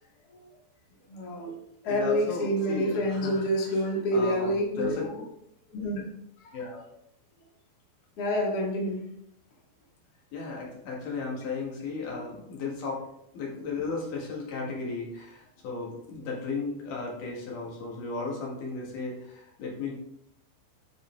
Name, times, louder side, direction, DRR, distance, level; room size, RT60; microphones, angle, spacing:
voice 1, 1.1-1.5 1.8-5.0 5.7-6.0 8.2-9.0, equal, 80° left, -2 dB, 0.8 m, -27 dB
voice 2, 1.8-3.9 4.1-5.1 6.5-6.8 10.3-13.0 13.3-19.9, left 4 dB, 55° left, -2 dB, 2.9 m, -35 dB
10.5 x 5.7 x 3.5 m, 0.76 s
omnidirectional pair, 5.2 m